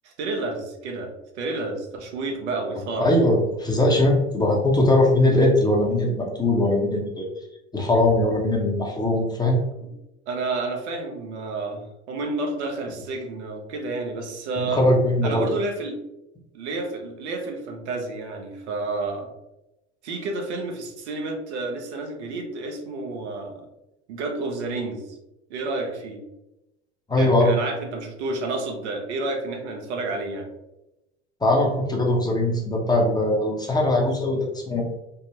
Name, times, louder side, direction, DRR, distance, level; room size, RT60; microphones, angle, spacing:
voice 1, 0.0-3.1 10.3-14.9 15.2-16.0 16.5-19.3 20.0-23.7 24.1-25.2 25.5-26.2 27.2-30.5, right 3 dB, 80° right, 2 dB, 0.7 m, -30 dB
voice 2, 3.0-7.2 7.7-9.6 14.6-15.5 27.1-27.5 31.4-34.8, left 1 dB, 10° left, -1 dB, 0.8 m, -20 dB
3.5 x 2.1 x 2.8 m, 0.92 s
hypercardioid pair, 85°, 34 cm